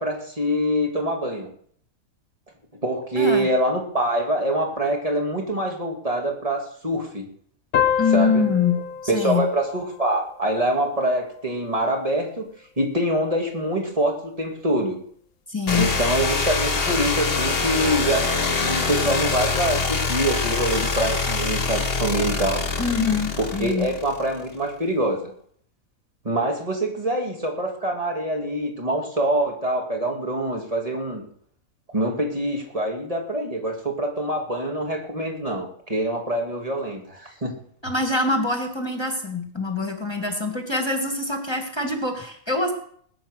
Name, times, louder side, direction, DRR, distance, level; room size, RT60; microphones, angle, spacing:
voice 1, 0.0-1.5 2.8-7.3 8.1-8.5 9.1-12.5 12.8-15.0 15.7-22.7 23.4-25.3 26.2-31.2 31.9-37.5, right 1 dB, 25° right, 1 dB, 2.7 m, -25 dB
voice 2, 3.2-3.5 8.0-8.8 9.1-9.5 15.5-15.9 22.8-23.9 37.8-42.7, left 4 dB, 20° left, 3 dB, 2.0 m, -24 dB
sound 1, 7.7-10.9, left 8 dB, 90° left, 1.5 m, -27 dB
sound 2, 15.7-24.4, left 4 dB, 45° left, 1.5 m, -25 dB
19.5 x 9.1 x 6.5 m, 0.62 s
omnidirectional pair, 1.5 m